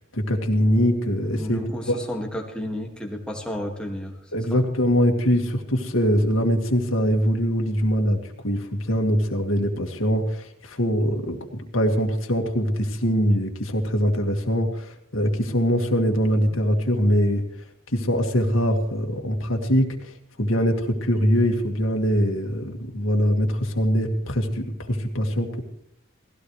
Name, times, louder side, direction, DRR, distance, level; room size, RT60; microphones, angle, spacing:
voice 1, 0.1-2.0 4.3-17.4 17.9-25.6, equal, 75° left, 3 dB, 2.1 m, -23 dB
voice 2, 1.3-4.1 4.5-4.7, equal, 5° left, 0 dB, 2.0 m, -32 dB
19.0 x 16.0 x 3.3 m, 0.70 s
head